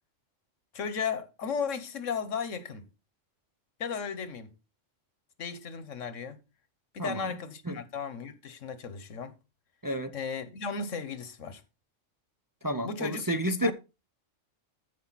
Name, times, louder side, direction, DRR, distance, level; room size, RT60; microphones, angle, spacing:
voice 1, 0.7-2.8 3.8-4.5 5.4-6.4 6.9-9.3 10.1-11.6 12.8-13.2 13.6-13.7, left 6 dB, 85° left, 1.5 m, -35 dB
voice 2, 7.0-7.3 7.7-7.8 9.8-10.1 12.6-13.7, equal, 25° right, 0.5 m, -30 dB
14.5 x 5.2 x 4.1 m
omnidirectional pair, 1.3 m